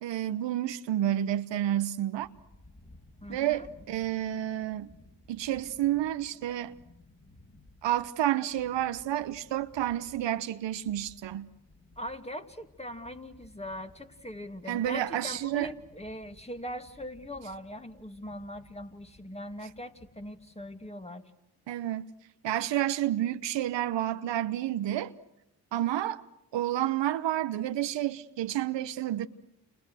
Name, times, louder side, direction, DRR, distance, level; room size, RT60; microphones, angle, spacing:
voice 1, 0.0-2.3 3.3-4.9 5.3-6.8 7.8-11.5 14.7-15.7 21.7-22.1 22.4-25.1 25.7-26.2 26.5-29.3, right 12 dB, 70° right, 1.1 m, -30 dB
sound 1, 2.2-20.9, left 2 dB, 30° left, 5.7 m, -58 dB
voice 2, 3.2-3.6 12.0-21.2, equal, 15° left, 2.6 m, -41 dB
29.5 x 29.0 x 6.5 m
supercardioid pair, 45°, 45 cm